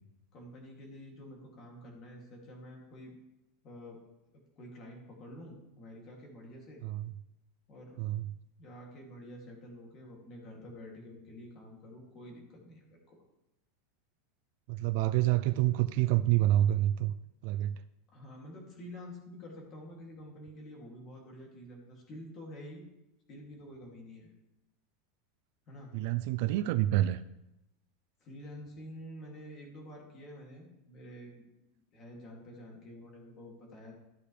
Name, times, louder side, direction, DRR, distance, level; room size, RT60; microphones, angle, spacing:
voice 1, 0.3-3.1 3.6-4.0 4.6-6.8 7.7-8.0 8.6-13.2 18.1-22.8 23.3-24.3 25.7-25.9 28.2-31.5 31.7-33.9, equal, 30° left, -1 dB, 2.6 m, -48 dB
voice 2, 6.8-7.1 8.0-8.3 14.7-17.1 17.4-17.8 25.9-27.2, right 14 dB, 45° right, 14 dB, 0.3 m, -28 dB
14.0 x 8.4 x 3.3 m, 0.90 s
supercardioid pair, 180°, 0 cm